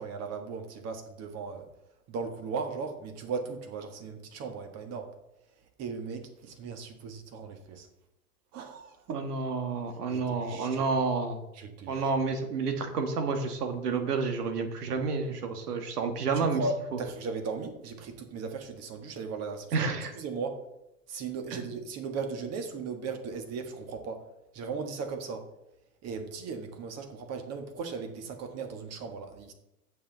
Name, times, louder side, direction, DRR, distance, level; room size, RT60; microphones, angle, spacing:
voice 1, 0.0-1.7 2.1-5.1 5.8-7.9 8.5-9.2 10.1-10.8 11.5-12.1 16.3-19.9 20.1-20.6 21.1-24.2 24.5-25.5 26.0-29.5, right 4 dB, 35° right, 6 dB, 1.6 m, -37 dB
voice 2, 9.1-11.4 11.9-16.6 19.7-20.1 21.5-21.6, right 4 dB, 80° right, 7 dB, 1.7 m, -30 dB
8.5 x 7.4 x 4.0 m, 0.88 s
hypercardioid pair, 125°, 46 cm